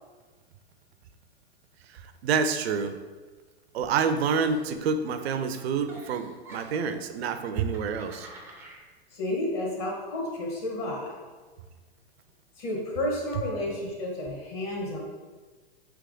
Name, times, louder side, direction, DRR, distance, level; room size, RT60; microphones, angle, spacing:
voice 1, 2.2-3.0 3.7-8.3, right 5 dB, 75° right, 9 dB, 0.5 m, -27 dB
Giggle, 4.4-5.2 5.5-7.0 7.5-8.8, right 1 dB, 5° right, 0.4 m, -48 dB
voice 2, 9.1-11.2 12.6-15.0, left 1 dB, 35° left, -2 dB, 1.2 m, -31 dB
3.5 x 3.0 x 3.8 m, 1.4 s
hypercardioid pair, 130°, 32 cm